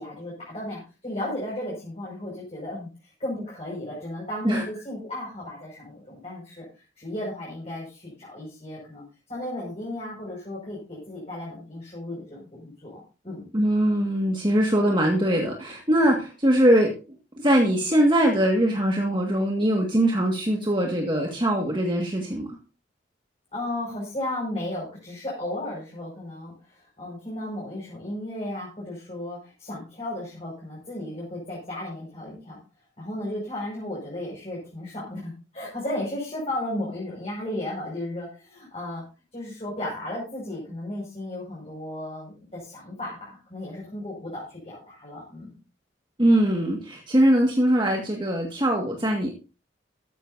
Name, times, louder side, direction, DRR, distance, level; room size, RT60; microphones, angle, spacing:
voice 1, 0.0-2.9 3.2-13.5 23.5-32.6 33.0-39.0 39.3-45.6, left 1 dB, 30° left, -5 dB, 5.7 m, -34 dB
voice 2, 13.5-17.0 17.4-22.6 46.2-49.3, right 1 dB, 25° right, 0 dB, 1.8 m, -22 dB
15.0 x 12.5 x 2.7 m, 0.32 s
head